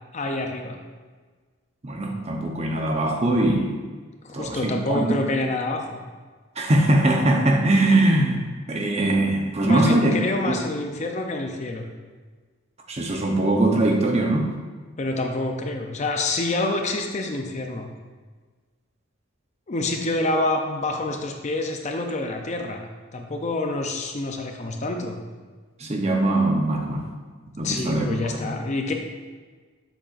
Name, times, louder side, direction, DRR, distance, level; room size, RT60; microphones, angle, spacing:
voice 1, 0.1-0.8 4.2-6.0 9.7-11.9 15.0-17.9 19.7-22.9 23.1-25.2 27.6-28.9, left 2 dB, 30° left, 4 dB, 0.5 m, -27 dB
voice 2, 1.8-3.7 4.3-5.1 6.6-8.4 8.7-10.1 10.5-10.6 12.9-14.5 25.8-27.0 27.6-28.2, right 1 dB, 30° right, 1 dB, 0.8 m, -21 dB
7.4 x 7.4 x 2.5 m, 1.4 s
head